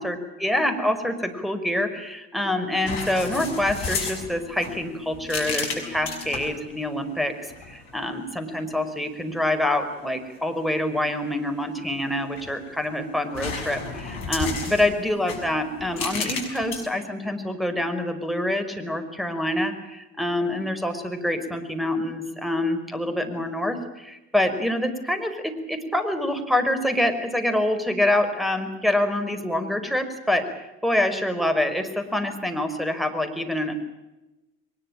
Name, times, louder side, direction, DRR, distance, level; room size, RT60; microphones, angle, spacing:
voice 1, 0.0-33.7, left 1 dB, ahead, 8 dB, 5.4 m, -26 dB
sound 1, 2.9-6.6 7.5-7.9 12.1-12.9 13.3-16.8, left 4 dB, 65° left, 6.4 m, -33 dB
23.0 x 21.5 x 8.9 m, 1.0 s
hypercardioid pair, 55°, 40 cm